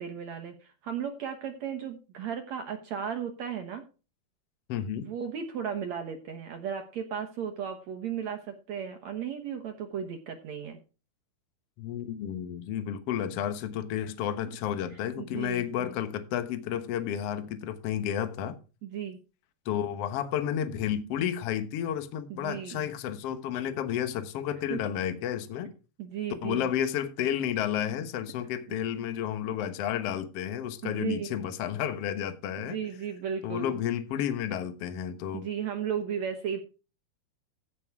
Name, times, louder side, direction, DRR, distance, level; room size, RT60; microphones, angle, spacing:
voice 1, 0.0-3.8 4.9-10.8 15.2-15.9 18.8-19.2 22.3-22.8 24.7-24.8 26.0-26.7 30.8-31.3 32.6-33.8 35.3-36.6, right 8 dB, 65° right, 1.8 m, -35 dB
voice 2, 4.7-5.0 11.8-18.6 19.6-25.7 26.4-32.8 33.4-35.4, left 10 dB, 75° left, 1.4 m, -31 dB
15.5 x 5.5 x 4.8 m
omnidirectional pair, 4.5 m